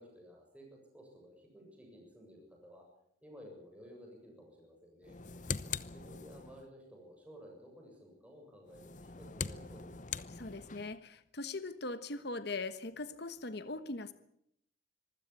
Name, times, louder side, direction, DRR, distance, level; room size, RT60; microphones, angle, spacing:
voice 1, 0.0-2.9 3.2-5.2 5.9-10.1, equal, 5° right, 0 dB, 7.3 m, -55 dB
sound 1, 5.0-6.7 8.7-11.0, left 6 dB, 40° left, 0.8 m, -42 dB
voice 2, 10.3-14.1, left 3 dB, 55° left, 11 dB, 1.3 m, -40 dB
25.5 x 16.0 x 8.5 m, 0.73 s
head